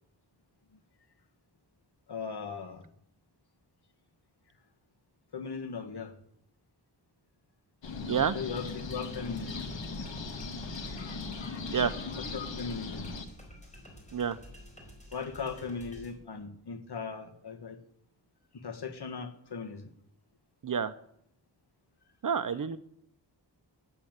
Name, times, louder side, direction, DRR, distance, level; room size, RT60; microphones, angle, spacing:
voice 1, 2.1-2.8 5.3-6.1 8.3-9.6 12.3-13.1 15.1-17.8 18.5-19.9, left 5 dB, 60° left, 5 dB, 1.7 m, -38 dB
sound 1, 7.8-13.3, left 3 dB, 80° left, 1.5 m, -38 dB
sound 2, 8.5-16.1, equal, 15° left, 4.4 m, -50 dB
voice 2, 20.6-20.9 22.2-22.8, right 7 dB, 50° right, 14 dB, 0.6 m, -28 dB
9.9 x 8.9 x 7.9 m, 0.71 s
wide cardioid pair, 105°, 44 cm